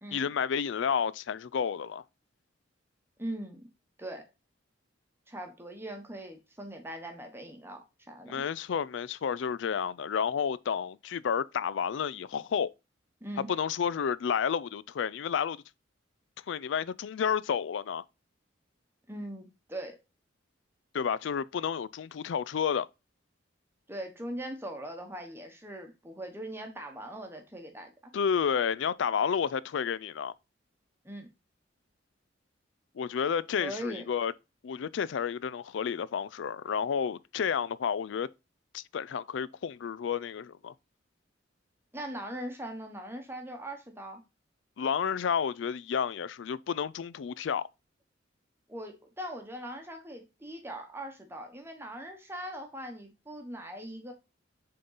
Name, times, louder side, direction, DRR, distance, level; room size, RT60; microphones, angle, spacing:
voice 1, 0.1-2.0 8.3-12.7 13.5-15.6 16.5-18.0 20.9-22.9 28.1-30.3 32.9-34.3 34.6-38.3 38.7-40.7 44.8-47.7, left 7 dB, 70° left, 0.4 m, -31 dB
voice 2, 3.2-3.7 4.0-4.2 5.3-8.4 13.2-13.5 19.1-20.0 23.9-28.1 31.0-31.3 33.6-34.0 41.9-44.2 48.7-54.1, right 1 dB, 10° right, 1.1 m, -40 dB
6.7 x 3.8 x 3.9 m
head